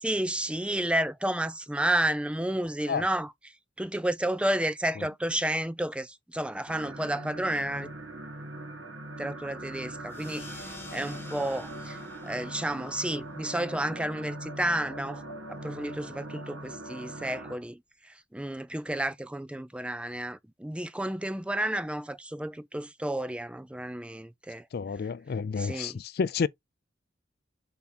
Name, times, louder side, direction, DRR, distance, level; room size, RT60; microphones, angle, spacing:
voice 1, 0.0-7.9 9.2-15.2 15.5-24.7 25.6-26.0, right 1 dB, 5° right, 0.5 m, -31 dB
sound 1, 6.7-17.6, right 1 dB, 65° right, 1.6 m, -41 dB
sound 2, 10.1-15.2, left 2 dB, 10° left, 1.6 m, -49 dB
voice 2, 24.7-26.5, left 5 dB, 50° left, 0.4 m, -30 dB
7.1 x 3.6 x 4.3 m
head